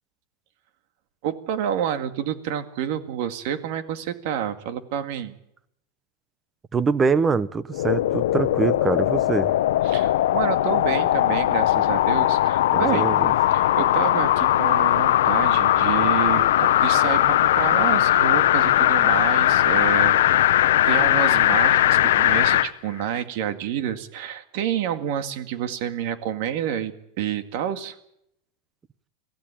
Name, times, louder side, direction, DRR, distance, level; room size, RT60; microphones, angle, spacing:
voice 1, 1.2-5.3 9.8-13.1 13.5-20.6 20.9-28.0, right 9 dB, 60° right, 9 dB, 2.1 m, -29 dB
voice 2, 6.7-9.5 12.7-13.3, right 5 dB, 15° right, 18 dB, 0.8 m, -24 dB
sound 1, 7.7-22.7 23.2-23.3, left 13 dB, 80° left, 0.7 m, -19 dB
23.0 x 15.5 x 8.9 m, 0.78 s
supercardioid pair, 155°, 0 cm